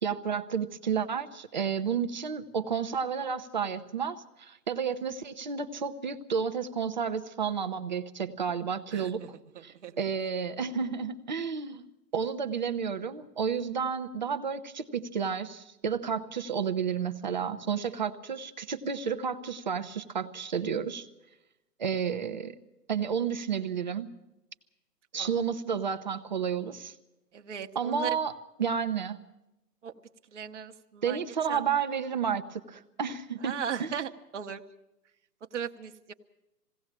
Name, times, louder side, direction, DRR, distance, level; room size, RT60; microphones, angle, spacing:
voice 1, 0.0-9.2 9.6-11.8 12.1-21.1 21.8-22.5 22.9-24.1 25.1-26.9 27.7-28.3 28.6-29.2 31.0-33.9, right 6 dB, 30° right, 8 dB, 0.8 m, -31 dB
voice 2, 8.9-9.3 9.5-10.0 25.2-25.3 27.3-28.1 29.8-29.9 30.3-31.2 31.5-31.6 33.4-34.6 35.5-36.1, right 8 dB, 45° right, 6 dB, 1.1 m, -37 dB
21.0 x 17.0 x 7.4 m, 0.94 s
hypercardioid pair, 165°, 48 cm